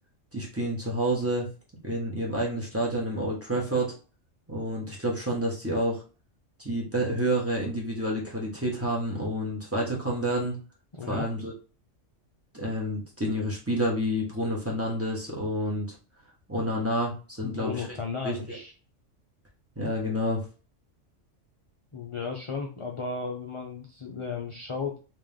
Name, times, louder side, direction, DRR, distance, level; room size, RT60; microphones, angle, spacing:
voice 1, 0.3-1.5 1.8-3.9 4.5-6.0 6.6-10.6 11.1-11.5 12.5-15.9 16.5-17.8 18.2-18.6 19.7-20.4, right 1 dB, 10° right, -3 dB, 1.3 m, -29 dB
voice 2, 10.9-11.3 17.4-18.7 21.9-25.0, left 5 dB, 40° left, 1 dB, 0.5 m, -34 dB
3.5 x 2.9 x 3.5 m, 0.36 s
omnidirectional pair, 1.3 m